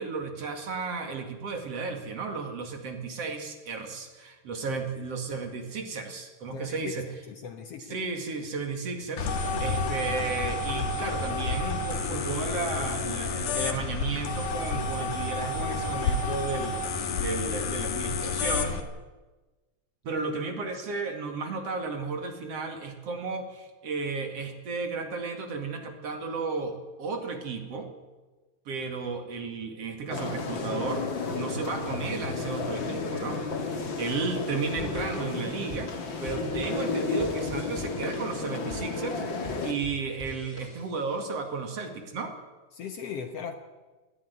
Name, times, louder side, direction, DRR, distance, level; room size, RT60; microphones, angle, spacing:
voice 1, 0.0-7.1 7.9-16.8 17.2-18.8 20.0-27.9 28.7-35.9 36.2-39.2 39.6-42.3, right 4 dB, 50° right, 5 dB, 3.0 m, -34 dB
voice 2, 6.5-6.9 7.3-8.0 20.1-20.2 42.7-43.5, left 7 dB, 60° left, 7 dB, 1.9 m, -38 dB
sound 1, 9.2-18.8, left 4 dB, 75° left, 3.2 m, -30 dB
sound 2, 30.1-39.7, left 4 dB, 40° left, 2.5 m, -32 dB
sound 3, 34.8-41.2, left 3 dB, 20° left, 3.5 m, -44 dB
20.0 x 14.5 x 9.7 m, 1.2 s
omnidirectional pair, 3.6 m